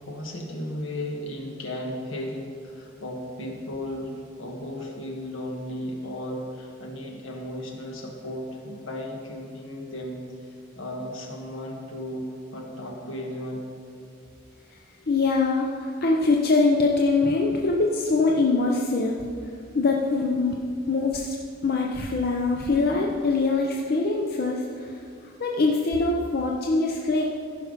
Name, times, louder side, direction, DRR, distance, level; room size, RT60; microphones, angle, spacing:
voice 1, 0.1-10.2 10.7-13.6, left 1 dB, 75° left, 1 dB, 1.6 m, -35 dB
voice 2, 15.1-19.2 19.7-20.5 20.9-21.4 21.6-25.0 25.4-27.2, left 3 dB, 50° left, -1 dB, 0.7 m, -23 dB
15.0 x 5.8 x 5.3 m, 2.3 s
head